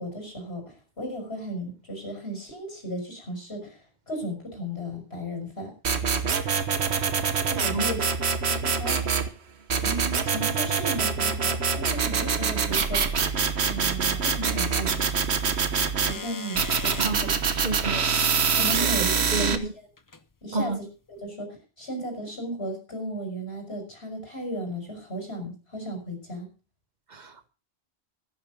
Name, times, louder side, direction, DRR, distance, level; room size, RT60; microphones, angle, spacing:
voice 1, 0.0-3.8 4.1-5.7 7.5-8.1 8.5-9.2 9.8-13.1 13.7-15.0 16.0-17.3 17.7-17.9 18.5-19.6 20.4-20.7 21.1-21.5 21.8-26.5, right 1 dB, 75° left, 6.3 m, -35 dB
sound 1, 5.8-9.3 9.7-16.1 16.6-19.6, right 6 dB, 85° right, 1.5 m, -25 dB
sound 2, 16.1-17.1 18.5-18.6 20.0-20.2 21.2-21.3, left 3 dB, 20° left, 0.6 m, -38 dB
voice 2, 17.0-18.1 19.3-19.7 20.5-20.8 27.1-27.5, right 3 dB, 45° right, 1.2 m, -31 dB
14.0 x 11.0 x 5.2 m
omnidirectional pair, 1.1 m